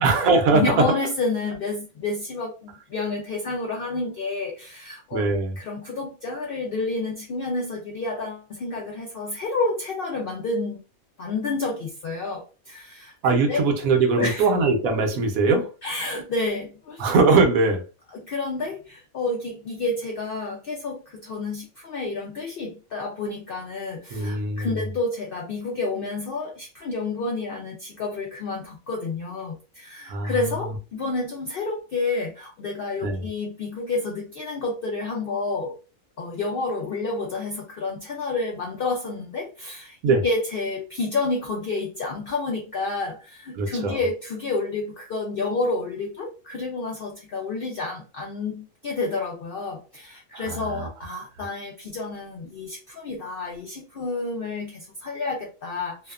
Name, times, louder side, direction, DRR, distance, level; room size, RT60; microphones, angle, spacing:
voice 1, 0.0-0.6 5.1-5.6 13.2-15.7 17.0-17.8 24.1-24.9 30.1-30.3 33.0-33.2 40.0-40.2 43.6-44.0 50.3-50.9, right 3 dB, 75° right, 1.0 m, -21 dB
voice 2, 0.5-5.3 5.6-10.8 11.2-13.6 14.2-14.5 15.8-17.1 18.1-35.7 36.2-56.1, left 3 dB, 80° left, 0.5 m, -29 dB
2.7 x 2.1 x 2.3 m
omnidirectional pair, 1.5 m